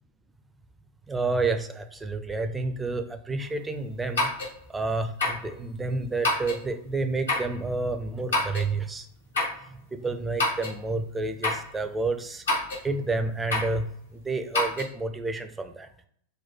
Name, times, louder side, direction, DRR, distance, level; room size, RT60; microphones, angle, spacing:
voice 1, 1.1-4.3 4.7-9.1 9.6-12.4 12.8-15.9, right 3 dB, 10° right, 7 dB, 0.5 m, -30 dB
sound 1, 4.2-4.5 5.2-5.5 6.2-6.6 7.3-7.5 8.3-8.7 9.3-9.6 10.4-10.8 11.4-11.7 12.5-12.8 13.5-13.8 14.5-14.8, left 2 dB, 70° left, 1.2 m, -26 dB
4.0 x 2.1 x 4.4 m, 0.64 s
figure-of-eight pair, 90°, 0 cm